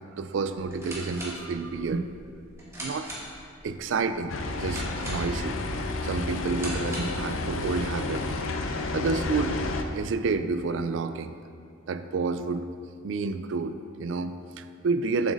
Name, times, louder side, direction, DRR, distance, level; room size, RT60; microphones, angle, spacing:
voice 1, 0.1-2.1 2.8-3.1 3.6-5.6 6.0-8.3 8.9-11.3 11.9-12.6 13.0-15.3, right 4 dB, 70° right, 10 dB, 0.4 m, -29 dB
sound 1, 0.6-7.3, equal, 15° right, 1.6 m, -41 dB
sound 2, 4.3-9.8, left 2 dB, 90° left, 0.6 m, -31 dB
8.1 x 7.5 x 2.6 m, 2.3 s
head